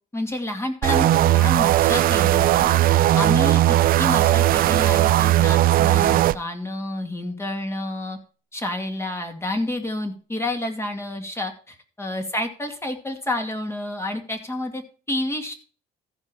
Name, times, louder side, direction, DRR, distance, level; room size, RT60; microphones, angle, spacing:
voice 1, 0.1-2.7 3.1-8.2 8.5-14.8 15.1-15.5, left 1 dB, 15° left, 4 dB, 2.4 m, -29 dB
sound 1, 0.8-6.4, right 14 dB, 60° right, 0.4 m, -18 dB
14.5 x 5.5 x 5.5 m, 0.39 s
cardioid pair, 110°, 17 cm